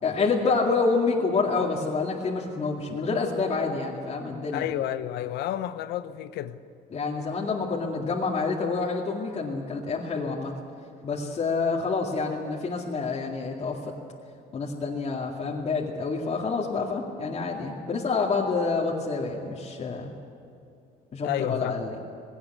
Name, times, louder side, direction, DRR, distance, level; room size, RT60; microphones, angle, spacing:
voice 1, 0.0-4.7 6.9-10.5 11.0-13.8 14.5-20.1 21.1-21.9, left 4 dB, 40° left, 2.3 m, -27 dB
voice 2, 4.5-6.6 21.2-21.8, left 12 dB, 80° left, 0.9 m, -30 dB
18.5 x 17.5 x 8.2 m
cardioid pair, 110°, 17 cm